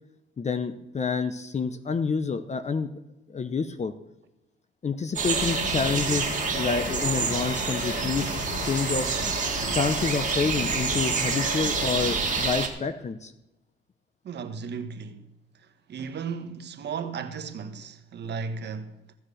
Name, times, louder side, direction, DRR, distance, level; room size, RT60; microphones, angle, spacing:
voice 1, 0.4-2.9 3.3-3.9 4.8-8.3 8.6-9.1 9.7-13.3, left 5 dB, 35° left, 0.8 m, -28 dB
sound 1, 5.2-12.7, right 5 dB, 40° right, 2.3 m, -28 dB
sound 2, 5.3-12.5, left 4 dB, 70° left, 1.7 m, -35 dB
voice 2, 14.2-15.3 15.9-19.1, right 5 dB, 60° right, 1.3 m, -35 dB
15.0 x 7.7 x 6.5 m
cardioid pair, 90°, 20 cm